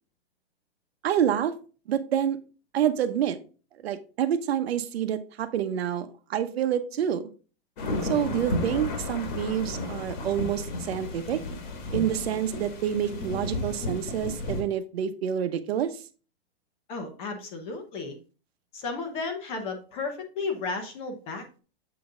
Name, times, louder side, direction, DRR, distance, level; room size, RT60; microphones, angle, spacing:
voice 1, 1.0-1.5 1.9-2.4 2.7-3.4 3.8-7.2 8.0-11.4 11.9-15.9, right 9 dB, 85° right, 9 dB, 1.0 m, -27 dB
sound 1, 7.8-14.6, left 2 dB, 55° left, 1.6 m, -33 dB
voice 2, 16.9-18.2 18.7-21.6, left 4 dB, 20° left, 6 dB, 0.8 m, -34 dB
7.6 x 4.0 x 3.8 m, 0.35 s
supercardioid pair, 175°, 30 cm